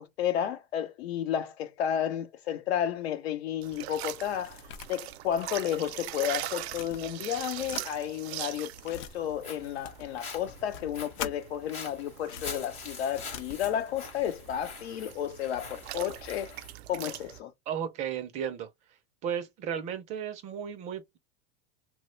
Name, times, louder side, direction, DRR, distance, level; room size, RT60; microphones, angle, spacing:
voice 1, 0.0-4.6 4.9-16.5 16.9-17.5, left 10 dB, 85° left, 0.8 m, -32 dB
sound 1, 3.5-6.2 6.5-7.9 8.5-9.1 9.8-11.4 12.2-13.8, left 9 dB, 55° left, 0.5 m, -44 dB
sound 2, 3.6-17.4, right 14 dB, 85° right, 0.5 m, -42 dB
Walk footsteps, 9.1-16.7, left 4 dB, 20° left, 0.8 m, -45 dB
voice 2, 17.7-18.7 19.2-21.2, right 8 dB, 25° right, 0.3 m, -34 dB
3.0 x 2.1 x 3.1 m
supercardioid pair, 155°, 31 cm